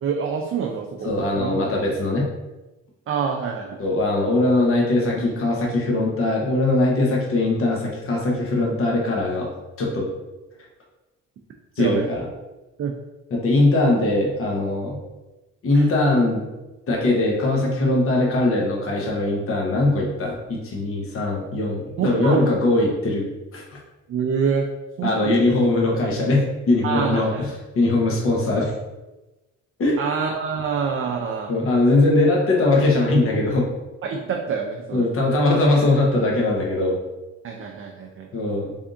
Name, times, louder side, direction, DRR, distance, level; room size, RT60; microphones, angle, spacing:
voice 1, 0.0-1.1 1.4-1.6 3.1-3.8 11.8-12.1 12.8-12.9 15.7-15.9 22.0-22.5 24.1-24.7 25.0-25.4 26.8-27.4 30.0-31.5 34.0-35.1 37.4-38.3, right 6 dB, 45° right, 2 dB, 0.5 m, -26 dB
voice 2, 1.0-2.3 3.8-9.5 9.8-10.1 11.8-12.3 13.3-15.0 15.6-16.5 16.9-23.3 23.5-23.6 25.0-28.7 29.8-30.0 31.5-33.7 34.9-37.0 38.3-38.8, left 2 dB, 45° left, -2 dB, 0.9 m, -21 dB
3.4 x 2.6 x 3.6 m, 1.1 s
cardioid pair, 90°, 30 cm